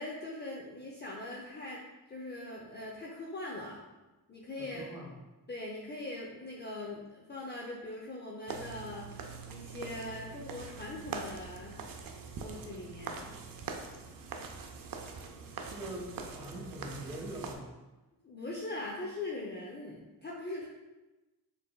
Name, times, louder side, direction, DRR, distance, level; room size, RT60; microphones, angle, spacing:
voice 1, 0.0-3.8 4.3-4.8 5.5-11.8 12.4-13.3 18.2-20.7, left 2 dB, 25° left, -3 dB, 0.6 m, -41 dB
voice 2, 4.6-5.1 15.6-17.7, right 1 dB, 10° right, -3 dB, 1.2 m, -43 dB
sound 1, 8.5-17.5, right 5 dB, 55° right, 0.5 m, -43 dB
4.3 x 3.4 x 2.2 m, 1.1 s
cardioid pair, 60°, 40 cm